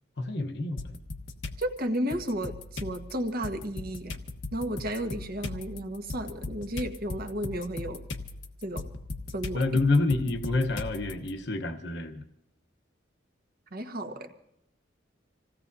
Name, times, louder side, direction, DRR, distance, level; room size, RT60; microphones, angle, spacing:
voice 1, 0.2-0.9 9.5-12.2, left 2 dB, 60° left, 5 dB, 1.0 m, -28 dB
sound 1, 0.8-1.6 2.1-11.3, left 2 dB, 80° left, 1.2 m, -38 dB
voice 2, 1.6-4.2 4.5-8.0 8.6-8.9 9.3-9.7 13.7-14.3, equal, 50° right, 5 dB, 1.3 m, -33 dB
27.0 x 16.5 x 2.7 m, 0.83 s
head